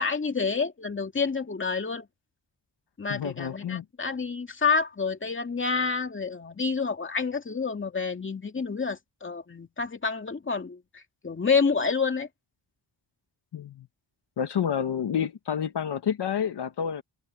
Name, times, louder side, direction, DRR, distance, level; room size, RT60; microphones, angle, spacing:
voice 1, 0.0-2.1 3.0-12.3, left 5 dB, 25° left, 2.4 m, -28 dB
voice 2, 3.1-3.8 13.5-13.9 14.4-17.0, left 8 dB, 60° left, 1.3 m, -29 dB
wide cardioid pair, 160°, 46 cm